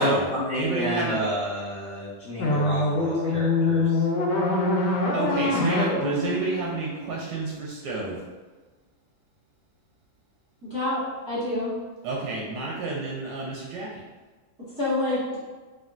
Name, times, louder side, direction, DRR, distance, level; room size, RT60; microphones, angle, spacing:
voice 1, 0.0-4.1, equal, 70° left, -9 dB, 0.6 m, -29 dB
voice 2, 0.5-1.2 4.8-8.2 12.0-13.9, right 3 dB, 75° right, -3 dB, 1.0 m, -29 dB
sound 1, 2.4-7.5, left 2 dB, 85° left, 1.3 m, -24 dB
voice 3, 10.7-11.7 14.8-15.4, left 1 dB, 20° right, -13 dB, 0.8 m, -27 dB
3.6 x 2.2 x 2.4 m, 1.3 s
omnidirectional pair, 2.1 m